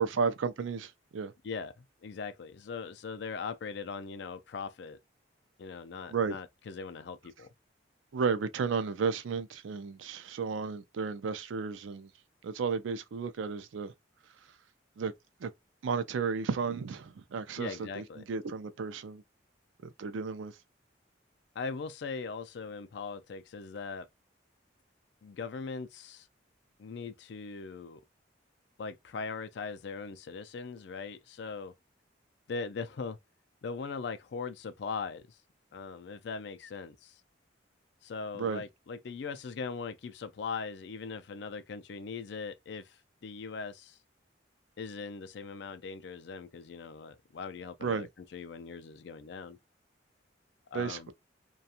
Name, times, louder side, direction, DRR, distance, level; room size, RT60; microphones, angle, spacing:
voice 1, 0.0-1.3 6.1-6.4 8.1-12.1 12.4-13.9 15.0-15.1 15.4-15.5 15.8-19.2 19.8-20.5 38.3-38.6 47.8-48.1 50.7-51.1, right 5 dB, 85° right, 0.4 m, -33 dB
voice 2, 1.4-5.0 5.6-7.5 17.6-18.2 21.6-24.1 25.2-26.3 26.8-28.0 28.8-31.7 32.5-33.2 33.6-35.4 35.7-37.2 38.0-44.0 44.8-49.6 50.7-51.1, left 5 dB, 65° left, 0.4 m, -40 dB
2.8 x 2.3 x 2.4 m
head